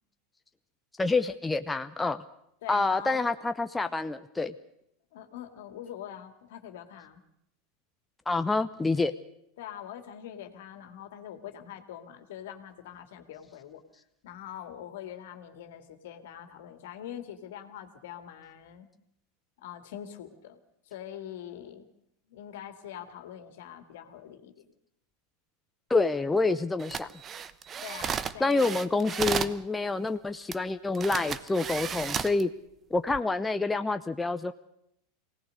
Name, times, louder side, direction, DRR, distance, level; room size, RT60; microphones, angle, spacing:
voice 1, 1.0-2.2 2.7-4.5 8.3-9.1 25.9-27.1 28.4-32.5 32.9-34.5, left 3 dB, 10° left, 8 dB, 0.8 m, -27 dB
voice 2, 2.6-3.2 5.1-7.2 9.6-13.8 14.2-18.9 19.6-20.6 20.9-21.9 22.3-24.7 27.8-29.5, left 10 dB, 70° left, 7 dB, 2.3 m, -44 dB
sound 1, 26.8-29.6 30.5-30.6 30.9-32.4 33.0-33.2, right 7 dB, 30° right, 0.9 m, -33 dB
24.0 x 18.0 x 6.5 m, 0.76 s
hypercardioid pair, 90°, 0 cm